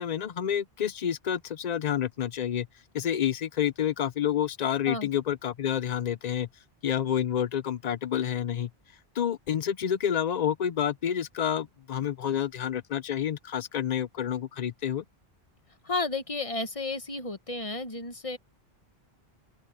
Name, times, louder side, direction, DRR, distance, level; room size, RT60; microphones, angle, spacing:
voice 1, 0.0-2.7 2.9-6.5 6.8-8.7 9.2-15.0, left 9 dB, 50° left, 0.6 m, -29 dB
voice 2, 15.8-18.4, left 3 dB, 35° left, 1.2 m, -32 dB
open air
omnidirectional pair, 1.0 m